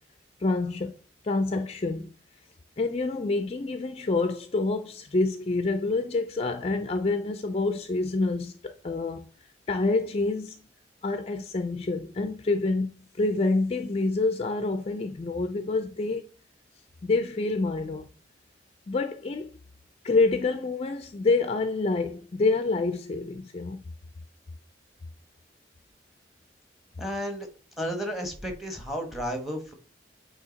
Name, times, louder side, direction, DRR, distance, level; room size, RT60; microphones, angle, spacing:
voice 1, 0.4-0.9 1.2-2.1 2.8-9.3 9.7-10.6 11.0-12.9 13.2-16.2 17.0-18.1 18.9-19.5 20.0-23.8, left 3 dB, 35° left, 0.4 m, -27 dB
voice 2, 27.0-27.5 27.8-29.7, equal, ahead, 1.1 m, -32 dB
8.4 x 2.8 x 3.9 m
head